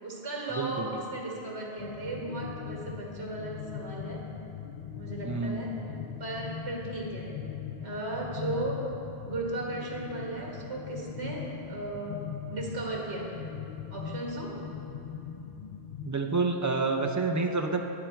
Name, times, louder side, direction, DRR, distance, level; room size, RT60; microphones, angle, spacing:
voice 1, 0.0-4.2 5.0-5.7 6.2-7.4 7.8-8.8 9.2-12.2 12.5-13.4 13.9-14.6, right 2 dB, 80° right, -2 dB, 2.1 m, -36 dB
voice 2, 0.6-1.0 5.2-6.0 16.1-17.8, right 3 dB, 25° right, 3 dB, 0.5 m, -29 dB
sound 1, 1.8-16.1, left 8 dB, 55° left, 0.5 m, -40 dB
11.0 x 9.9 x 4.5 m, 2.9 s
omnidirectional pair, 1.1 m